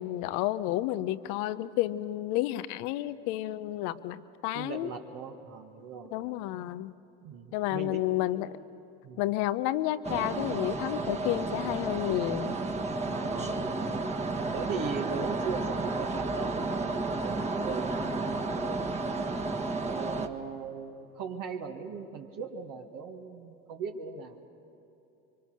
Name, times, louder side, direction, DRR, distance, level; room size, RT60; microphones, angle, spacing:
voice 1, 0.0-4.9 6.1-6.9 7.5-8.6 9.2-12.6, left 15 dB, 70° left, 14 dB, 0.9 m, -31 dB
voice 2, 4.5-6.1 7.2-8.1 9.0-9.2 13.1-14.1 14.5-19.3 19.9-24.5, right 5 dB, 55° right, 1 dB, 1.9 m, -39 dB
sound 1, 10.0-20.3, right 3 dB, 20° right, 1.6 m, -32 dB
24.5 x 24.0 x 6.5 m, 2.9 s
hypercardioid pair, 80°, 37 cm